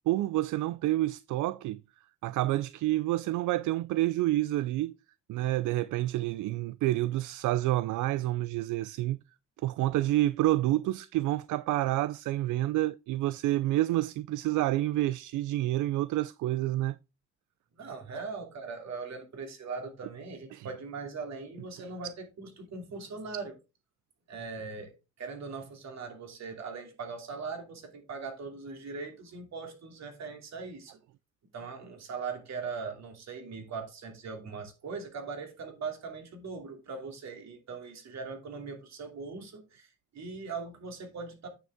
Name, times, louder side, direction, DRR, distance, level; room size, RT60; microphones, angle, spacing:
voice 1, 0.1-1.8 2.2-4.9 5.3-9.2 9.6-17.0 20.5-20.7, right 16 dB, 80° right, 0.5 m, -28 dB
voice 2, 17.8-23.5 24.3-24.9 25.2-31.0 31.5-41.5, right 4 dB, 60° right, 2.9 m, -40 dB
9.2 x 6.5 x 3.5 m
cardioid pair, 90°, 30 cm